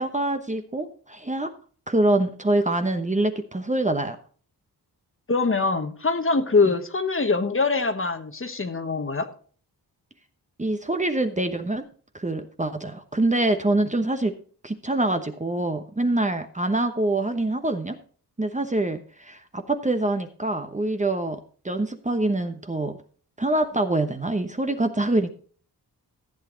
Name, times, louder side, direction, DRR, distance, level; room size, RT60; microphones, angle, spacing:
voice 1, 0.0-1.5 1.9-4.2 10.6-11.8 12.1-14.3 14.6-18.0 18.4-21.4 21.6-22.9 23.4-25.3, right 2 dB, 20° right, 7 dB, 1.0 m, -25 dB
voice 2, 5.3-9.3, left 4 dB, 30° left, 8 dB, 1.3 m, -23 dB
14.5 x 8.3 x 3.9 m, 0.44 s
wide cardioid pair, 100°, 40 cm